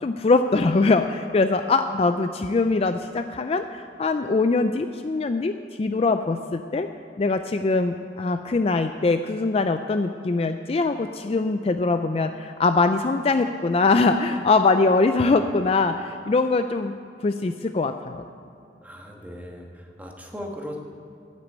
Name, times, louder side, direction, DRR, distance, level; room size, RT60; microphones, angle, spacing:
voice 1, 0.0-6.9 7.2-16.9 17.2-18.2, left 3 dB, 35° left, 8 dB, 0.4 m, -22 dB
voice 2, 18.8-20.8, equal, 10° right, 1 dB, 1.3 m, -38 dB
9.3 x 8.4 x 9.3 m, 2.7 s
head